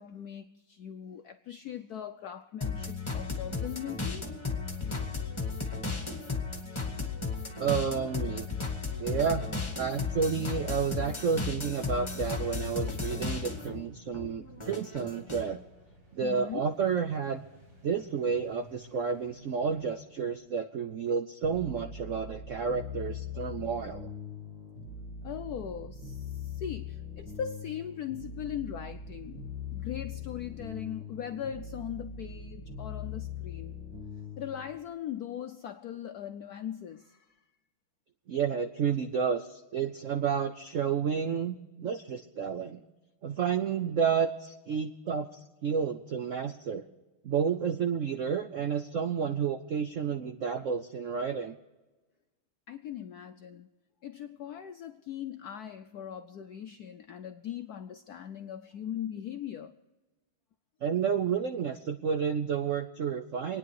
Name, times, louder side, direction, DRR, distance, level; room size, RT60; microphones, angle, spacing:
voice 1, 0.0-4.3 16.2-16.6 25.2-33.8 34.4-37.4 52.7-53.7 54.0-59.7, left 9 dB, 80° left, 0.8 m, -40 dB
sound 1, 2.6-13.8 14.1-15.5, left 4 dB, 15° left, 1.6 m, -34 dB
voice 2, 7.6-8.5 9.0-9.5 9.8-15.6 16.1-17.4 17.8-24.1 38.3-42.8 43.2-45.3 45.6-46.8 47.2-51.5 60.8-63.6, right 6 dB, 90° right, 0.6 m, -30 dB
sound 2, 12.5-20.4, right 1 dB, 40° right, 3.1 m, -54 dB
sound 3, 21.4-34.8, left 6 dB, 65° right, 8.0 m, -41 dB
26.0 x 9.9 x 4.7 m
omnidirectional pair, 2.3 m